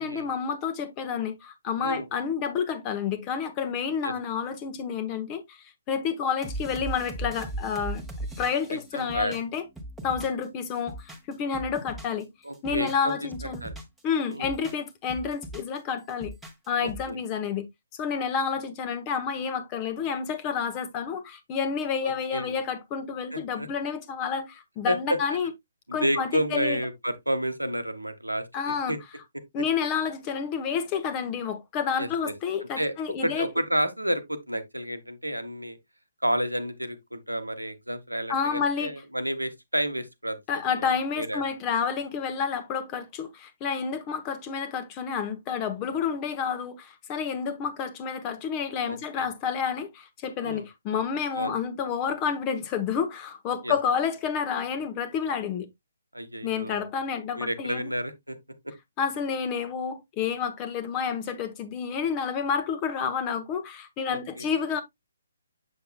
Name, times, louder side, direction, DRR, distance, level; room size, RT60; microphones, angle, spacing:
voice 1, 0.0-5.6 5.9-8.0 8.4-9.6 10.0-12.3 12.6-13.6 14.0-16.3 16.7-17.6 18.0-25.5 25.9-26.8 28.5-28.9 29.5-33.5 38.3-38.9 40.5-55.7 56.4-57.9 59.0-64.8, left 6 dB, 20° left, 0.9 m, -29 dB
sound 1, 6.4-10.5 10.8-12.2 12.5-14.0 14.3-15.8 16.1-17.1, right 1 dB, ahead, 1.2 m, -38 dB
voice 2, 8.7-9.4 12.4-13.3 13.6-13.7 14.3-14.5 16.8-17.2 22.0-22.5 23.3-23.7 24.9-25.4 25.9-29.0 29.3-29.4 32.0-32.3 32.8-35.8 36.2-40.4 40.8-41.4 48.9-49.3 50.4-50.7 51.4-51.5 53.6-53.7 56.1-56.9 57.3-58.4 58.6-58.7 64.1-64.5, right 1 dB, 90° right, 1.1 m, -30 dB
7.1 x 6.7 x 2.2 m
figure-of-eight pair, 135°, 0 cm